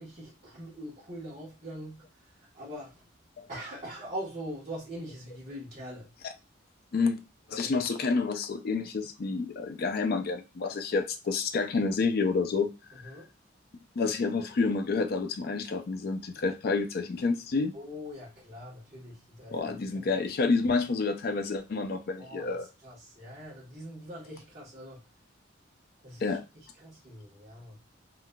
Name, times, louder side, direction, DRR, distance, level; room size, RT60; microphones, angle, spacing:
voice 1, 0.0-3.0 3.5-6.1 7.6-7.8 12.9-13.3 17.7-20.1 22.2-25.0 26.0-26.4 26.8-27.8, equal, 35° right, 1.1 m, -43 dB
voice 2, 7.5-12.7 14.0-17.7 19.5-22.7 26.2-26.4, left 4 dB, 50° left, 0.4 m, -29 dB
3.7 x 2.4 x 2.2 m
head